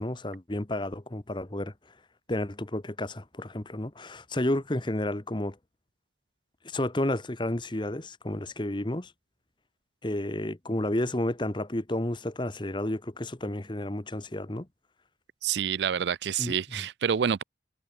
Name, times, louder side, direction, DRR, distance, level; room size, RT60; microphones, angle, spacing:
voice 1, 0.0-1.7 2.3-5.6 6.6-9.1 10.0-14.7 16.4-16.8, left 1 dB, 25° left, 1.2 m, -31 dB
voice 2, 15.4-17.4, right 7 dB, 70° right, 0.4 m, -28 dB
head